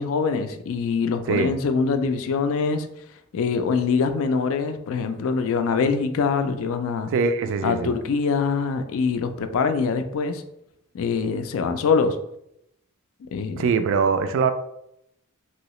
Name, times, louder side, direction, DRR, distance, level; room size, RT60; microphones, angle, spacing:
voice 1, 0.0-2.9 3.3-7.1 7.6-10.4 10.9-12.2 13.3-13.7, left 5 dB, 65° left, 8 dB, 0.3 m, -24 dB
voice 2, 7.1-7.9 13.6-14.5, right 5 dB, 60° right, 9 dB, 0.3 m, -22 dB
3.0 x 2.7 x 3.0 m, 0.79 s
head